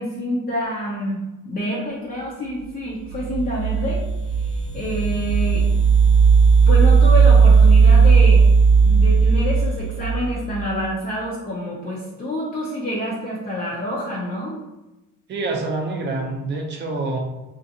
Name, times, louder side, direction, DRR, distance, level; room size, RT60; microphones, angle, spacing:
voice 1, 0.0-4.0 4.5-5.7 6.7-8.4 8.8-14.6, equal, 25° left, -5 dB, 0.5 m, -27 dB
sound 1, 3.1-10.6, right 5 dB, 75° left, 0.9 m, -15 dB
voice 2, 15.3-17.2, right 2 dB, 30° right, 0 dB, 0.5 m, -26 dB
2.5 x 2.4 x 2.7 m, 1.0 s
cardioid pair, 120°, 35 cm